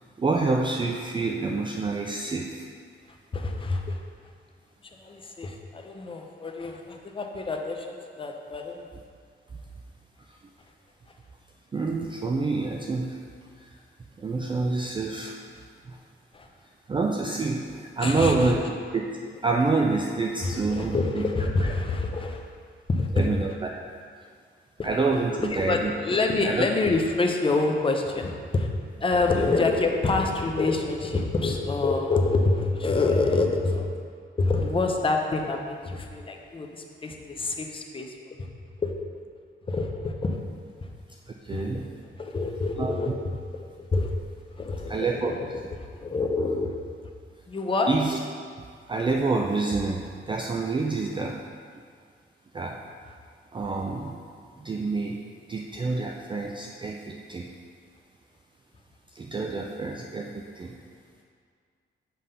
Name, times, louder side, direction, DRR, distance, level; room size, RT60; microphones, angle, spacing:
voice 1, 0.2-2.7 11.7-13.2 13.6-13.7 14.2-15.4 15.9-16.0 16.9-18.6 18.9-19.1 19.4-21.3 23.1-23.7 24.8-25.9 26.4-26.7 29.3-29.5 41.3-42.0 42.8-42.9 44.9-45.3 47.9-48.2 48.9-51.4 52.5-52.8 53.5-54.2 54.6-55.2 55.5-57.5 59.1-60.8, right 3 dB, 25° right, 1 dB, 0.4 m, -27 dB
voice 2, 3.3-4.0 5.0-8.8 16.3-16.5 18.0-18.5 20.4-22.4 22.9-23.3 24.8-24.9 25.5-28.7 29.0-33.9 34.4-38.1 38.4-38.5 38.8-39.0 39.7-40.4 41.5-41.8 42.2-43.1 43.5-44.1 44.5-45.6 46.0-46.7 47.5-47.9, left 3 dB, 25° left, 2 dB, 0.7 m, -26 dB
7.5 x 3.5 x 5.5 m, 2.1 s
wide cardioid pair, 125°, 21 cm